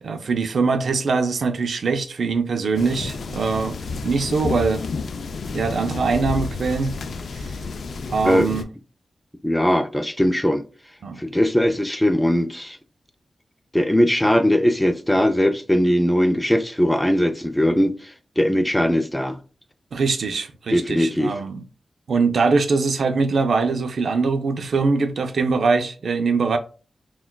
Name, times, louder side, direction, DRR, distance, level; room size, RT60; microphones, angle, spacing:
voice 1, 0.0-4.8 5.5-7.0 7.3-7.5 8.1-8.7 11.0-11.2 19.9-21.6 22.1-26.6, right 4 dB, 75° right, 0.5 m, -22 dB
sound 1, 2.7-8.6, left 4 dB, 75° left, 0.3 m, -31 dB
voice 2, 9.4-10.6 11.2-12.8 13.7-19.4 20.7-21.3, equal, 10° left, 0.4 m, -20 dB
5.9 x 2.3 x 2.2 m
wide cardioid pair, 90°, 0 cm